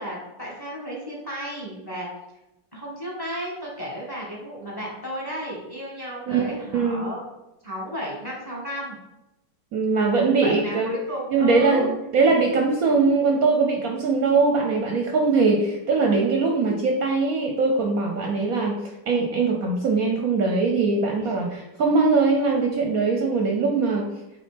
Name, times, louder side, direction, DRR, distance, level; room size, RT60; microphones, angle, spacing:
voice 1, 0.0-2.1 2.7-7.2 7.6-9.0 10.4-11.9, equal, 15° left, -3 dB, 1.2 m, -33 dB
voice 2, 6.7-7.0 9.7-11.0 11.3-18.8 19.1-24.1, right 4 dB, 65° right, 2 dB, 1.0 m, -21 dB
8.3 x 3.4 x 3.4 m, 0.95 s
omnidirectional pair, 1.9 m